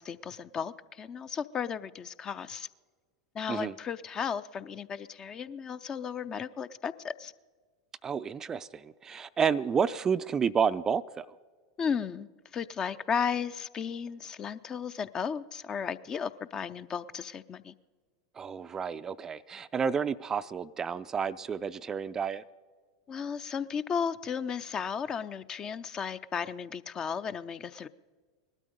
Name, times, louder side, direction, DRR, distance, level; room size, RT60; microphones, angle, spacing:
voice 1, 0.0-2.7 3.3-7.3 11.8-12.3 12.5-17.7 23.1-27.9, left 7 dB, 30° left, 0.5 m, -34 dB
voice 2, 8.0-11.3 18.4-22.4, right 6 dB, 25° right, 0.4 m, -30 dB
19.5 x 12.5 x 5.2 m
figure-of-eight pair, 85°, 2 cm